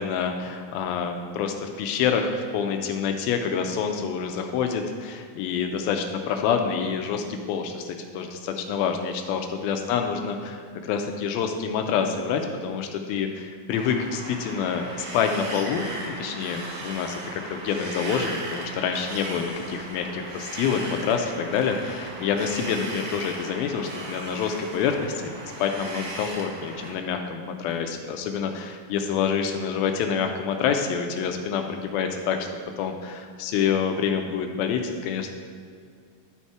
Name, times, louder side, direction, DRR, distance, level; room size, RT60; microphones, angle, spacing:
voice 1, 0.0-17.2 17.5-25.3 25.6-32.5 32.8-35.4, left 6 dB, 85° left, 4 dB, 2.4 m, -27 dB
Wind, 13.7-26.9, right 2 dB, 60° right, 2.3 m, -37 dB
11.5 x 4.2 x 4.6 m, 2.1 s
omnidirectional pair, 4.2 m